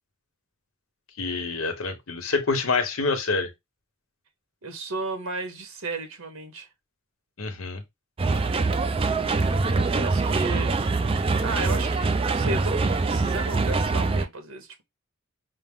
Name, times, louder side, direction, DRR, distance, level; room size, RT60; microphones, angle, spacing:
voice 1, 1.2-3.5 7.4-7.8, left 4 dB, 80° left, 1.1 m, -26 dB
voice 2, 4.6-6.7 9.7-10.7 11.4-14.8, right 3 dB, 85° right, 1.1 m, -34 dB
sound 1, 8.2-14.3, right 3 dB, 25° right, 0.4 m, -24 dB
5.6 x 2.0 x 3.6 m
head